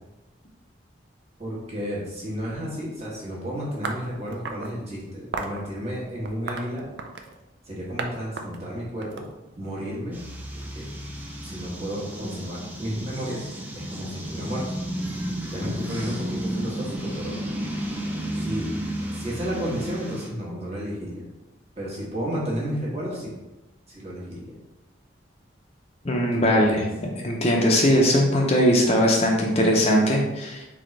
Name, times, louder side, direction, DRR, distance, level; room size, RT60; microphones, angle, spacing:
voice 1, 1.4-6.9 7.7-9.3 9.6-10.2 10.7-10.9 11.4-13.5 13.7-14.7 15.5-17.4 18.4-18.7 19.1-21.3 21.8-23.3 23.9-24.5 26.3-26.8, equal, 35° right, -5 dB, 1.3 m, -32 dB
sound 1, 3.8-4.7 5.3-5.6 6.2-7.4 8.0-8.1 8.4-9.8, right 4 dB, 60° right, 0.5 m, -33 dB
sound 2, 10.1-20.3, right 1 dB, 10° right, 0.5 m, -32 dB
voice 2, 26.0-26.8 27.2-30.6, equal, 35° left, 0 dB, 0.6 m, -20 dB
4.1 x 3.7 x 3.2 m, 1.0 s
head